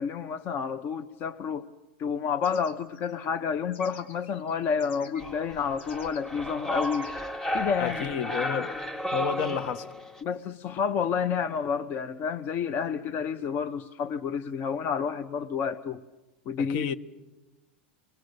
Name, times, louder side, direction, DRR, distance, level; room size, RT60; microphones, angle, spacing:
voice 1, 0.0-1.6 2.0-7.1 7.5-8.1 10.2-16.0 16.5-16.9, left 6 dB, 40° left, 0.9 m, -30 dB
sound 1, 2.4-5.4 5.8-6.2 6.5-7.9, left 5 dB, 80° left, 3.6 m, -51 dB
sound 2, 5.2-10.2, left 1 dB, 10° left, 1.6 m, -33 dB
voice 2, 7.8-8.8 9.1-9.9 16.6-16.9, left 7 dB, 60° left, 1.3 m, -31 dB
29.0 x 22.0 x 6.7 m
hypercardioid pair, 120°, 6 cm